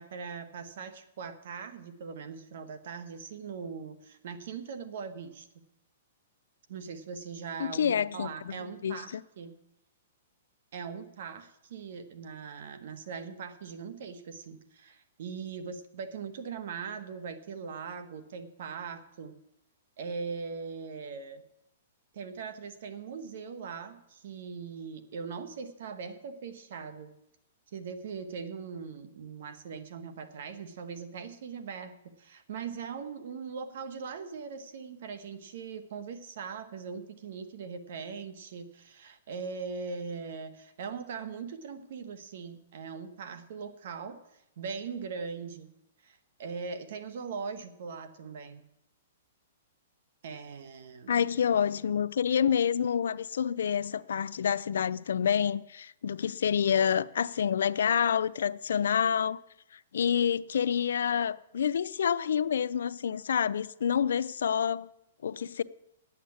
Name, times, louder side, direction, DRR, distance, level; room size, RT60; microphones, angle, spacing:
voice 1, 0.0-5.5 6.7-9.5 10.7-19.4 20.0-21.4 22.1-27.1 27.7-45.7 46.0-48.6 50.2-51.2, right 5 dB, 60° right, 1.5 m, -40 dB
voice 2, 7.6-8.6 8.8-9.2 51.1-59.4 59.9-64.9 65.2-65.6, left 8 dB, 80° left, 0.5 m, -28 dB
10.0 x 8.6 x 8.7 m
hypercardioid pair, 155°, 0 cm